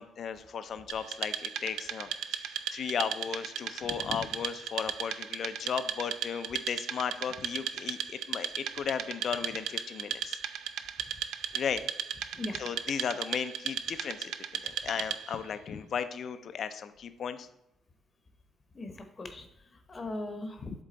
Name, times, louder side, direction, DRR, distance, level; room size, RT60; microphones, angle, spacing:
voice 1, 0.0-10.4 11.5-11.8 12.5-14.3 14.6-17.5, left 7 dB, 60° left, 11 dB, 0.5 m, -35 dB
Wood, 0.9-15.4, right 9 dB, 85° right, 0.4 m, -36 dB
voice 2, 18.7-20.7, left 2 dB, 35° left, 6 dB, 0.9 m, -39 dB
7.5 x 3.6 x 3.9 m, 0.85 s
cardioid pair, 90°, 0 cm